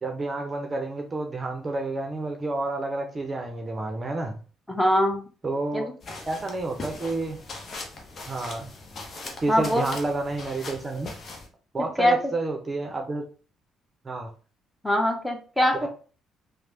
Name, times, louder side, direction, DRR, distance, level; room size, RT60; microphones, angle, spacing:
voice 1, 0.0-4.4 5.4-5.9 6.3-7.4 8.3-8.7 9.4-11.1 11.7-13.2 14.0-14.3, right 2 dB, 30° right, 3 dB, 0.6 m, -30 dB
voice 2, 4.7-5.2 5.7-5.8 9.5-9.9 11.8-12.2 14.8-15.9, equal, 10° left, 2 dB, 0.9 m, -23 dB
sound 1, 6.0-11.5, left 2 dB, 50° left, 0.7 m, -40 dB
3.1 x 2.1 x 2.7 m, 0.37 s
hypercardioid pair, 50°, 0 cm